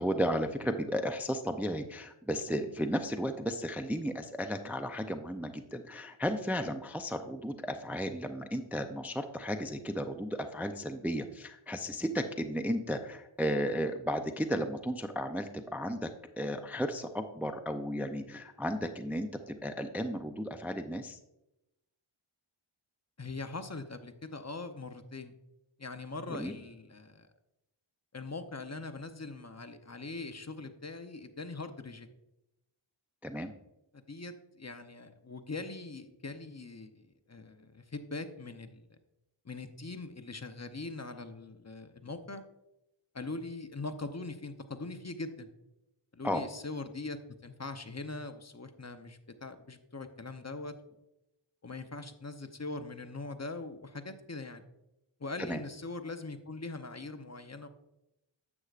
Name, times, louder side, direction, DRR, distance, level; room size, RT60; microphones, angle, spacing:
voice 1, 0.0-16.1 16.4-21.2 26.3-26.5 33.2-33.5 46.2-46.4 55.4-55.6, equal, 5° right, 7 dB, 0.5 m, -34 dB
voice 2, 23.2-25.3 25.8-27.3 28.1-32.1 33.9-38.9 39.4-42.4 43.1-45.5 46.1-50.7 51.6-54.6 55.2-57.7, left 3 dB, 30° left, 8 dB, 0.7 m, -42 dB
9.6 x 7.9 x 2.4 m, 0.90 s
wide cardioid pair, 45°, 50 cm